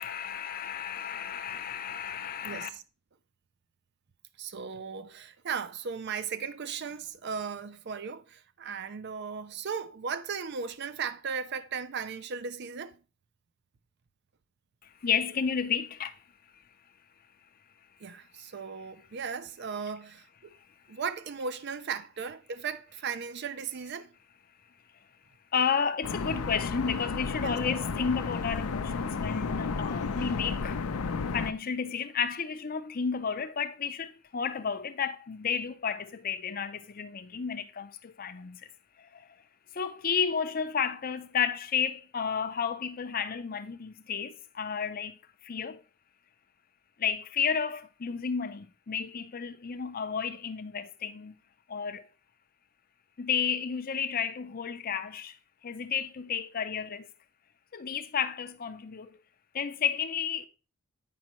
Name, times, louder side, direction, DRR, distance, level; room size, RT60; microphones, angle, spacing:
voice 1, 0.0-2.7 14.8-16.2 20.9-21.0 25.5-30.8 31.3-38.7 39.0-39.4 39.7-45.8 47.0-51.4 51.7-52.1 53.2-55.4 55.6-57.1 57.7-59.2 59.5-60.5, left 6 dB, 40° left, 0.5 m, -32 dB
voice 2, 2.4-2.8 4.4-13.0 18.0-20.5 20.9-24.1 27.4-27.5 30.2-30.3, right 6 dB, 50° right, 0.5 m, -36 dB
sound 1, 26.0-31.5, left 4 dB, 90° left, 0.5 m, -32 dB
8.5 x 5.3 x 3.0 m
head